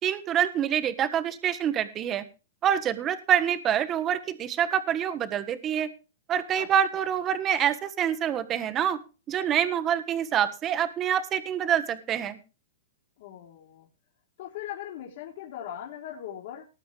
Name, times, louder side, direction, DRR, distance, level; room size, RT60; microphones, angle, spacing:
voice 1, 0.0-2.3 2.6-5.9 6.3-9.0 9.3-12.4, right 9 dB, 25° right, 11 dB, 1.5 m, -26 dB
voice 2, 13.2-13.9 14.4-16.7, left 11 dB, 55° left, -1 dB, 3.7 m, -39 dB
19.5 x 8.3 x 3.4 m, 0.32 s
hypercardioid pair, 150°, 0 cm